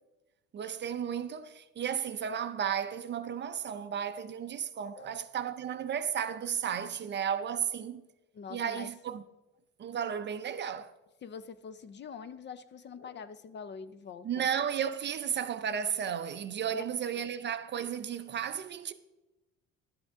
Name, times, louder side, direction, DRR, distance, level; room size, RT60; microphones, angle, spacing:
voice 1, 0.5-8.0 8.5-9.2 9.8-10.9 14.2-18.9, right 8 dB, 35° right, 0.5 m, -34 dB
voice 2, 8.3-8.9 11.2-14.5 16.7-16.8 17.1-17.2, left 6 dB, 35° left, 0.5 m, -44 dB
11.5 x 7.7 x 3.6 m
supercardioid pair, 105°, 33 cm